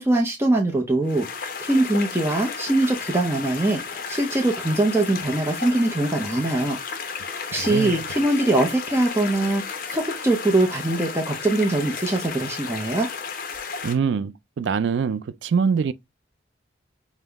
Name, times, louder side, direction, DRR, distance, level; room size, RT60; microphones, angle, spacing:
voice 1, 0.0-6.8 7.5-13.1, right 2 dB, 15° right, 0.6 m, -22 dB
sound 1, 1.0-13.9, left 5 dB, 50° left, 0.7 m, -33 dB
voice 2, 7.2-8.0 13.8-15.9, right 6 dB, 70° right, 0.3 m, -24 dB
5.3 x 2.1 x 3.4 m
head